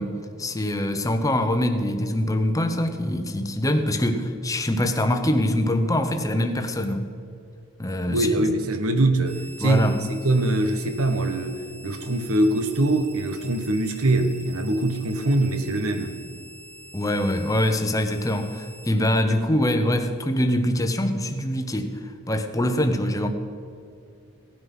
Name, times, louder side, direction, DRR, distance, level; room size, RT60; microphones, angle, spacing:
voice 1, 0.0-7.1 7.8-8.4 9.6-10.0 16.9-23.3, left 1 dB, 15° left, 0.9 m, -24 dB
voice 2, 8.1-16.1, right 2 dB, 75° right, 1.3 m, -23 dB
sound 1, 9.2-18.9, right 1 dB, 15° right, 2.6 m, -46 dB
17.5 x 9.4 x 5.6 m
head